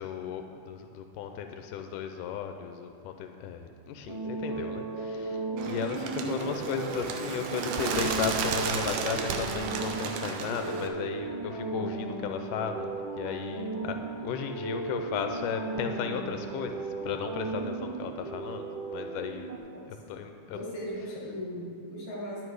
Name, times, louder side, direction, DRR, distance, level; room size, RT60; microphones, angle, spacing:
voice 1, 0.0-6.0 6.3-19.5 19.9-20.6, left 7 dB, 90° left, 6 dB, 2.2 m, -35 dB
sound 1, 4.1-19.6, right 3 dB, 55° right, 1.5 m, -36 dB
Bird, 5.6-10.9, right 5 dB, 90° right, 2.4 m, -33 dB
voice 2, 5.8-6.4 20.0-20.2 20.5-22.4, equal, 50° left, -4 dB, 2.8 m, -37 dB
11.0 x 9.0 x 4.8 m, 2.5 s
omnidirectional pair, 3.6 m